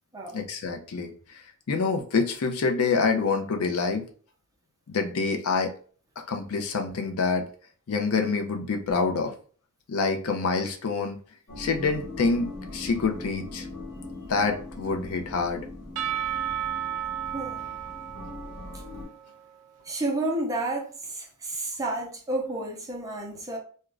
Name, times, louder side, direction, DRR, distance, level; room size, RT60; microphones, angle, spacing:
voice 1, 0.3-1.1 1.7-4.1 4.9-5.7 6.3-7.5 7.9-9.3 9.9-11.2 11.6-13.7 14.3-15.6, left 4 dB, 70° left, 0.5 m, -26 dB
sound 1, 11.5-19.1, left 2 dB, 40° left, 1.1 m, -40 dB
Percussion / Church bell, 16.0-19.8, right 10 dB, 75° right, 0.3 m, -33 dB
voice 2, 17.3-17.8 19.8-23.6, right 2 dB, 15° right, 0.5 m, -31 dB
2.4 x 2.1 x 3.1 m
head